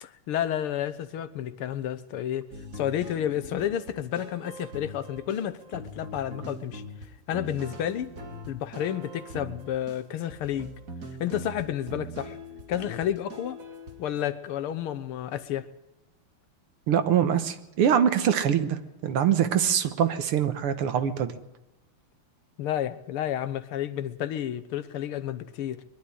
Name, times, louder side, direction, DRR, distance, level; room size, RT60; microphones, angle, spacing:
voice 1, 0.0-2.5 2.7-6.8 7.3-8.1 8.5-10.7 11.2-12.4 12.7-13.6 14.0-15.7 22.6-25.8, left 10 dB, 80° left, 1.9 m, -31 dB
sound 1, 2.5-14.2, right 1 dB, 40° right, 2.3 m, -42 dB
voice 2, 16.9-21.4, right 9 dB, 80° right, 2.1 m, -24 dB
22.0 x 12.0 x 10.0 m
omnidirectional pair, 2.4 m